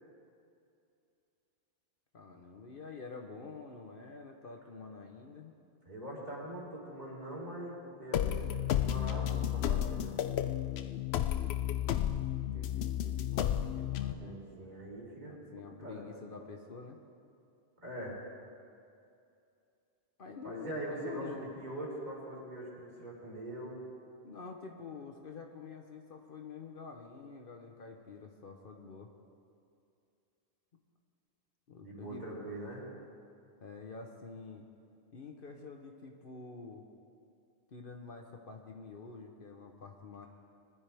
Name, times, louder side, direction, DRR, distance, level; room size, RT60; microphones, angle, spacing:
voice 1, 2.1-5.5 12.1-14.4 15.2-17.0 20.2-21.5 24.2-29.1 31.7-32.5 33.6-34.7 35.1-36.8 37.7-40.3, left 4 dB, 55° left, 3 dB, 1.1 m, -48 dB
voice 2, 5.9-10.2 14.2-15.3 15.8-16.0 17.8-18.2 20.4-23.8 31.8-32.8, right 1 dB, 40° right, -4 dB, 3.7 m, -42 dB
sound 1, 8.1-14.1, left 11 dB, 70° left, 0.8 m, -32 dB
21.0 x 12.5 x 3.5 m, 2.5 s
omnidirectional pair, 1.1 m